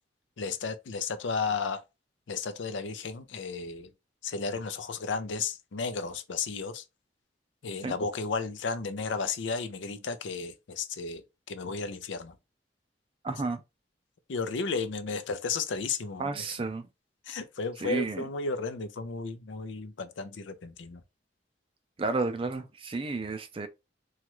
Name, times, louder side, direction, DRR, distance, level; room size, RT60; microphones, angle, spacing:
voice 1, 0.4-1.8 2.3-3.9 4.2-6.8 7.6-12.4 14.3-16.4 17.3-21.0, left 4 dB, 80° left, 0.5 m, -33 dB
voice 2, 13.2-13.6 16.2-16.9 17.8-18.2 22.0-23.7, right 3 dB, 30° right, 0.4 m, -31 dB
3.1 x 2.4 x 3.0 m
head